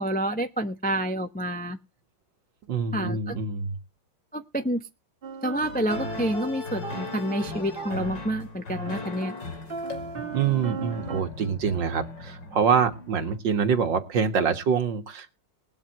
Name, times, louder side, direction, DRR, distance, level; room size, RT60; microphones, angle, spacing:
voice 1, 0.0-1.8 2.9-3.4 4.3-4.8 5.4-9.3, right 1 dB, 10° left, 6 dB, 0.4 m, -28 dB
voice 2, 2.7-3.8 10.2-15.3, right 6 dB, 60° right, 7 dB, 2.3 m, -25 dB
sound 1, 5.2-8.2 8.8-11.2, right 4 dB, 35° right, 1.1 m, -37 dB
sound 2, 5.6-13.4, left 3 dB, 60° left, 3.4 m, -38 dB
19.0 x 12.5 x 3.1 m, 0.27 s
omnidirectional pair, 2.2 m